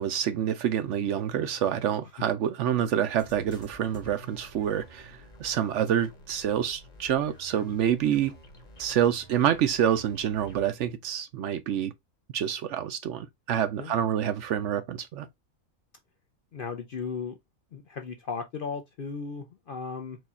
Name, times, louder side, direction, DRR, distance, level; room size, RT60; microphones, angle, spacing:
voice 1, 0.0-8.3 8.8-11.9 12.3-15.3, right 9 dB, 65° right, 0.8 m, -27 dB
sound 1, 3.1-10.7, equal, 35° left, 1.3 m, -50 dB
voice 2, 16.5-17.4 17.7-20.2, left 5 dB, 55° left, 0.6 m, -36 dB
4.8 x 2.3 x 4.1 m
omnidirectional pair, 1.5 m